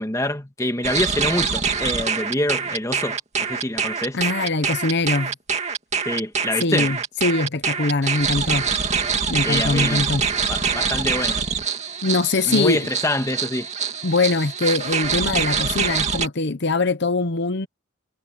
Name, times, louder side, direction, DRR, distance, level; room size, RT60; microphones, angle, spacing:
voice 1, 0.0-4.2 6.0-6.9 9.5-10.1 10.5-11.4 12.5-13.7, left 1 dB, 15° left, 1.7 m, -26 dB
sound 1, 0.8-16.3, right 6 dB, 30° right, 2.3 m, -24 dB
voice 2, 4.1-5.3 6.5-8.7 9.3-10.3 12.0-12.9 14.0-17.7, left 3 dB, 55° left, 0.9 m, -22 dB
head